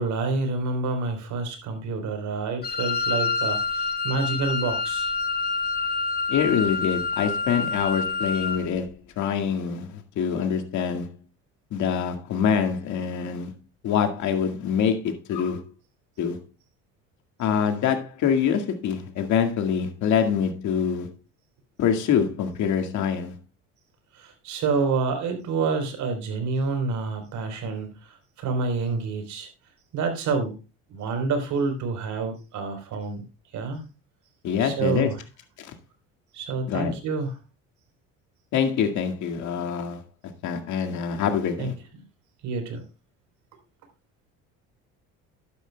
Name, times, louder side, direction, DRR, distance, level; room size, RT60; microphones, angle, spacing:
voice 1, 0.0-5.1 24.1-29.5 29.9-30.6 30.9-33.2 33.5-33.8 34.6-35.2 36.3-37.4 41.6-41.7 42.4-42.8, right 4 dB, 60° right, 4.0 m, -28 dB
Wind instrument woodwind instrument, 2.6-8.7, left 4 dB, 30° left, 1.4 m, -27 dB
voice 2, 6.3-11.2 11.7-13.5 13.8-15.7 16.2-16.4 17.4-21.1 21.8-23.4 34.4-35.1 35.6-35.7 36.7-36.9 38.5-40.0 40.4-41.7, left 7 dB, 60° left, 2.1 m, -25 dB
12.5 x 9.9 x 2.3 m
supercardioid pair, 90°, 32 cm